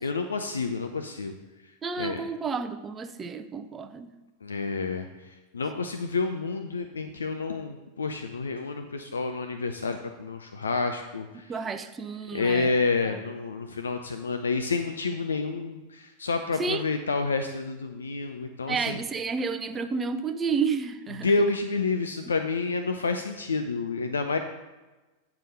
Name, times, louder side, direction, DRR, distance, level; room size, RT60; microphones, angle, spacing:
voice 1, 0.0-1.3 2.0-2.2 4.4-5.1 5.5-11.5 12.3-19.0 21.2-24.4, left 4 dB, 75° left, 7 dB, 0.4 m, -29 dB
voice 2, 1.8-4.1 11.5-12.7 13.0-13.2 16.6-16.8 18.7-21.3, right 5 dB, 20° right, 9 dB, 0.5 m, -31 dB
9.2 x 4.8 x 5.3 m, 1.2 s
figure-of-eight pair, 90°, 0 cm